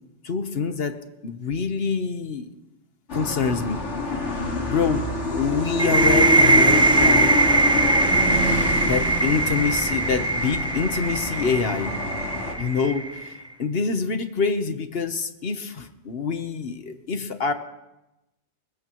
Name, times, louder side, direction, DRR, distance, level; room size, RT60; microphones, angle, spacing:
voice 1, 0.2-1.0 1.2-2.5 3.1-3.9 4.7-7.3 8.8-11.9 12.6-17.5, left 5 dB, 55° left, 8 dB, 1.2 m, -26 dB
sound 1, 3.1-12.5, left 2 dB, 75° left, 2.3 m, -27 dB
sound 2, 5.8-13.3, right 2 dB, 5° right, 0.4 m, -21 dB
21.0 x 19.5 x 3.1 m, 0.95 s
omnidirectional pair, 1.2 m